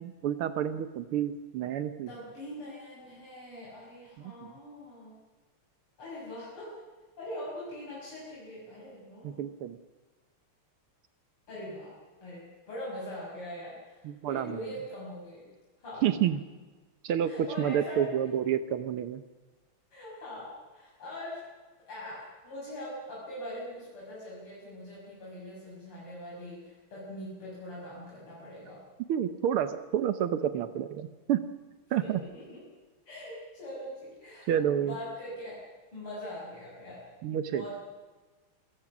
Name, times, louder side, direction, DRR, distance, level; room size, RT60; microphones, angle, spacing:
voice 1, 0.0-2.1 4.2-4.5 9.2-9.8 14.0-14.6 16.0-16.4 17.0-19.2 29.1-31.4 31.9-32.2 34.5-34.9 37.2-37.6, right 10 dB, 80° right, 10 dB, 1.8 m, -29 dB
voice 2, 2.1-5.2 6.0-6.8 7.2-9.5 11.5-11.9 12.2-15.5 15.8-16.0 17.2-18.3 19.9-21.4 21.9-28.8 32.0-32.6 33.1-34.5 34.8-35.6 35.9-37.1 37.5-37.8, left 1 dB, 85° left, -7 dB, 7.4 m, -42 dB
27.0 x 18.0 x 6.1 m, 1.3 s
omnidirectional pair, 2.4 m